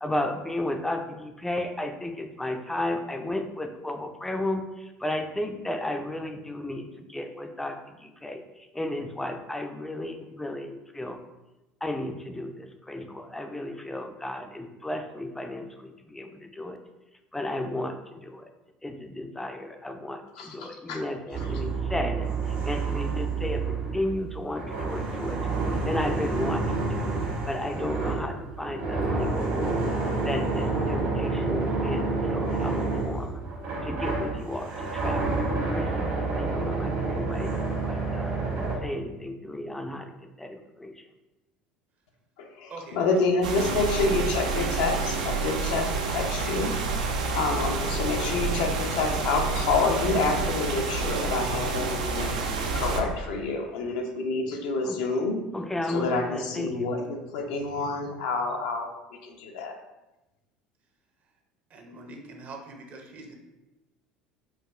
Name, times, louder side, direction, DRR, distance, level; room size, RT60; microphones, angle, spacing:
voice 1, 0.0-11.2 11.8-16.8 17.3-18.5 18.8-22.3 22.6-25.4 25.8-27.1 27.5-29.9 30.2-32.8 33.0-33.4 33.8-35.4 35.7-38.3 38.8-41.0 54.8-55.0 55.5-56.9, left 1 dB, 10° left, 6 dB, 0.4 m, -34 dB
voice 2, 20.4-21.0 42.4-46.8 47.3-52.4 52.7-55.4 55.9-58.9 59.2-59.7, left 3 dB, 70° left, 2 dB, 0.5 m, -28 dB
sound 1, 21.3-38.7, right 3 dB, 65° right, 1.3 m, -29 dB
voice 3, 42.7-43.2 61.7-63.3, right 3 dB, 45° right, 3 dB, 0.6 m, -43 dB
sound 2, 43.4-53.0, right 4 dB, 80° right, 0.4 m, -28 dB
4.6 x 2.3 x 2.3 m, 1.0 s
hypercardioid pair, 75°, 4 cm